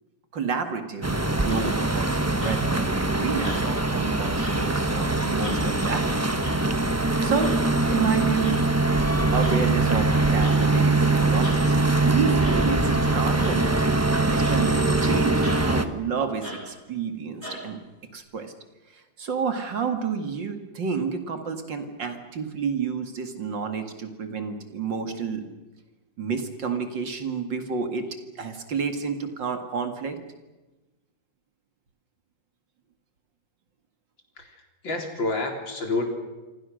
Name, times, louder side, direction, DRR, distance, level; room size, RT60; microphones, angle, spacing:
voice 1, 0.3-6.3 7.2-8.6 9.3-17.8 18.1-18.5 18.9-25.5 26.2-28.1 28.4-30.2, right 6 dB, 70° right, 6 dB, 2.8 m, -30 dB
sound 1, 1.0-15.8, right 2 dB, 10° right, 0.9 m, -22 dB
sound 2, 1.5-1.8 2.4-2.8 3.4-3.9 4.4-4.6 5.4-5.7 6.4-6.6 7.4-7.6 8.4-8.6 9.4-9.6 10.4-10.6 11.4-11.6 12.4-12.6 13.4-13.7 14.4-14.6 15.4-15.6 16.4-16.7 17.4-17.7, equal, 35° left, 7.0 m, -38 dB
voice 2, 34.4-36.0, left 2 dB, 75° left, 3 dB, 4.7 m, -29 dB
28.5 x 24.5 x 6.5 m, 1.1 s
omnidirectional pair, 2.1 m